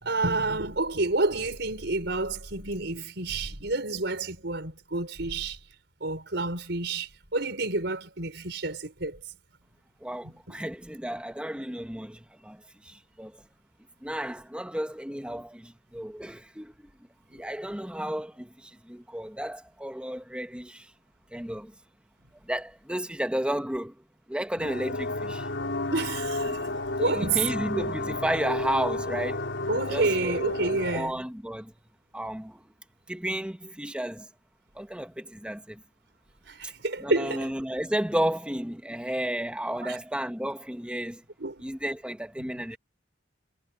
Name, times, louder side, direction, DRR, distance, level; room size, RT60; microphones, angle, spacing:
voice 1, 0.0-5.6 6.0-9.2 10.2-10.6 17.3-17.4 25.9-26.6 27.0-27.5 29.7-31.1 36.5-37.5 39.8-40.0 41.4-41.6 42.4-42.5, right 3 dB, 65° right, 5.3 m, -29 dB
voice 2, 10.0-13.4 14.0-16.9 17.3-20.9 21.3-21.7 22.4-23.9 24.3-25.5 27.0-29.5 29.9-30.4 30.9-31.7 32.1-32.6 33.1-34.3 34.7-35.8 36.6-36.7 37.0-41.2 41.6-42.8, right 1 dB, 5° right, 1.5 m, -33 dB
sound 1, 24.6-31.0, left 2 dB, 70° left, 4.3 m, -32 dB
head